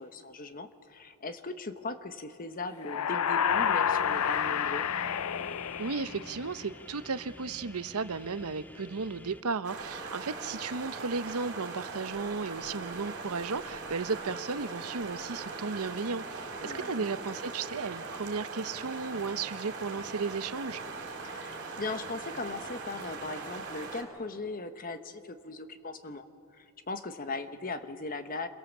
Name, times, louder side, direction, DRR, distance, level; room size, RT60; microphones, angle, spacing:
voice 1, 0.0-4.9 16.6-17.0 21.2-26.2 26.5-28.5, left 3 dB, 40° left, 9 dB, 1.2 m, -39 dB
sound 1, 2.8-6.6, left 8 dB, 75° left, 0.5 m, -29 dB
sound 2, 3.5-9.4, left 1 dB, 10° left, 0.6 m, -50 dB
voice 2, 5.8-20.8, right 4 dB, 80° right, 13 dB, 0.8 m, -34 dB
sound 3, 9.6-24.0, right 3 dB, 50° right, 4.2 m, -40 dB
28.0 x 22.5 x 7.4 m, 2.4 s
head